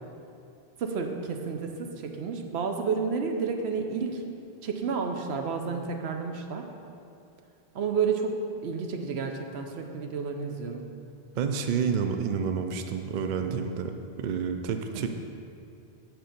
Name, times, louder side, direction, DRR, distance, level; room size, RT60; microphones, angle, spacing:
voice 1, 0.8-4.2 4.6-6.7 7.7-10.8 14.9-15.0, right 5 dB, 80° right, 4 dB, 1.0 m, -31 dB
voice 2, 11.4-13.9 14.2-15.1, right 6 dB, 55° right, 6 dB, 0.6 m, -29 dB
7.8 x 4.4 x 6.5 m, 2.5 s
omnidirectional pair, 1.1 m